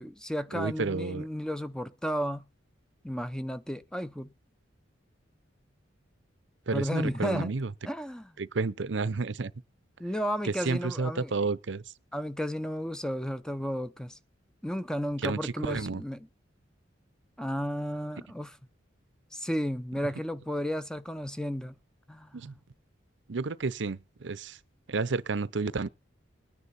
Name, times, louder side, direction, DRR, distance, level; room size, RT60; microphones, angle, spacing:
voice 1, 0.0-2.4 3.0-4.3 6.7-7.5 7.8-8.3 10.0-11.3 12.1-14.2 14.6-16.3 17.4-18.6 19.3-21.8 22.1-22.6, equal, 5° left, 0.6 m, -33 dB
voice 2, 0.5-1.3 6.7-7.7 8.4-9.5 10.4-11.8 15.2-16.0 22.3-22.5 23.3-24.6 24.9-25.9, right 4 dB, 65° right, 0.7 m, -31 dB
21.0 x 9.8 x 4.2 m
head